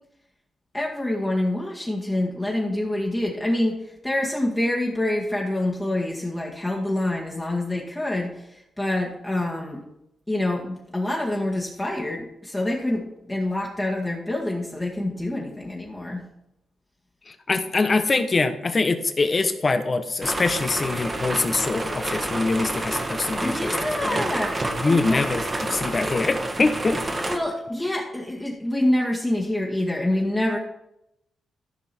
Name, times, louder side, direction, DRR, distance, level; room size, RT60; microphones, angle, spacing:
voice 1, 0.7-9.8 10.3-16.2 23.3-25.2 27.3-30.6, left 1 dB, 15° left, -3 dB, 2.0 m, -26 dB
voice 2, 17.3-24.2 24.8-27.0, left 3 dB, 35° left, 9 dB, 1.1 m, -24 dB
sound 1, 20.2-27.4, right 2 dB, 30° right, 1.5 m, -29 dB
14.5 x 5.4 x 4.5 m, 0.85 s
cardioid pair, 75°, 0 cm